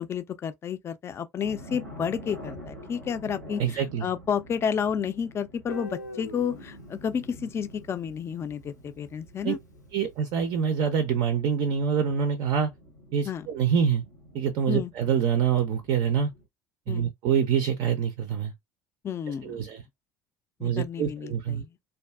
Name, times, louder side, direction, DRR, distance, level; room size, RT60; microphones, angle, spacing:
voice 1, 0.0-9.6 13.2-13.5 14.7-14.9 16.9-17.1 19.0-19.6 20.6-21.7, left 7 dB, 30° left, 0.4 m, -31 dB
sound 1, 1.4-16.5, equal, 90° right, 0.7 m, -47 dB
voice 2, 3.6-4.1 9.4-9.5 9.9-12.7 13.1-14.0 14.3-16.3 16.9-18.5 19.4-19.8 20.6-21.6, right 7 dB, 50° right, 0.4 m, -25 dB
Guitar, 5.7-8.6, left 1 dB, 90° left, 0.5 m, -43 dB
2.5 x 2.3 x 2.2 m
figure-of-eight pair, 65°, 9 cm